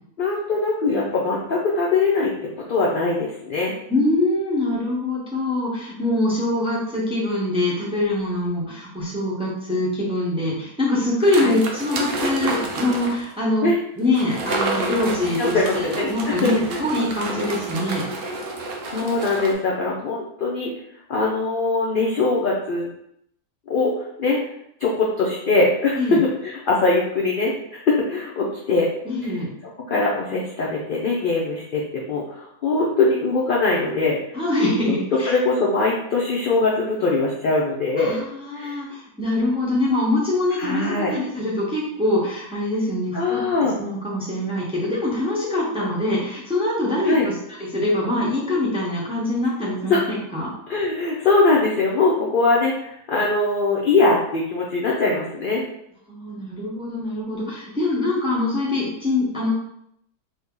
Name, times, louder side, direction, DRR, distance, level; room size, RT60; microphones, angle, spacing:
voice 1, 0.2-2.3 2.7-3.7 11.3-11.5 13.6-13.8 15.3-16.1 16.4-16.8 18.9-20.7 21.1-22.9 23.7-24.4 24.8-28.9 29.2-29.4 29.9-34.2 34.9-35.0 35.3-38.2 38.6-38.8 40.6-41.1 43.1-43.7 47.0-47.3 49.9-50.0 50.7-55.6, left 3 dB, 70° left, -3 dB, 0.5 m, -22 dB
voice 2, 3.9-13.7 14.0-18.0 26.0-26.2 29.0-29.5 34.3-35.3 38.0-50.5 56.1-59.5, left 2 dB, 5° right, -5 dB, 0.5 m, -24 dB
sound 1, 11.2-13.3 14.1-19.5, right 3 dB, 70° right, 0.5 m, -29 dB
2.7 x 2.7 x 3.6 m, 0.75 s
omnidirectional pair, 1.6 m